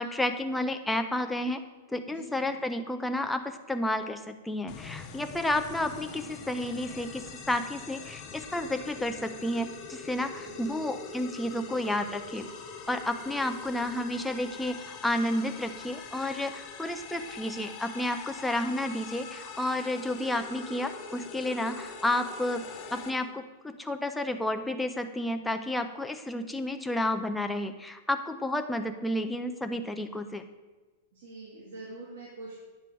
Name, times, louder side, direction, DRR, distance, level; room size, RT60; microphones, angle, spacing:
voice 1, 0.0-1.6 1.9-12.5 12.9-30.4, left 1 dB, 5° left, 6 dB, 0.4 m, -31 dB
voice 2, 2.1-2.5 10.4-10.8 31.1-32.6, right 3 dB, 65° right, -5 dB, 2.5 m, -45 dB
sound 1, 4.7-23.1, left 5 dB, 20° left, 0.8 m, -43 dB
9.2 x 4.9 x 7.5 m, 1.3 s
supercardioid pair, 175°, 0 cm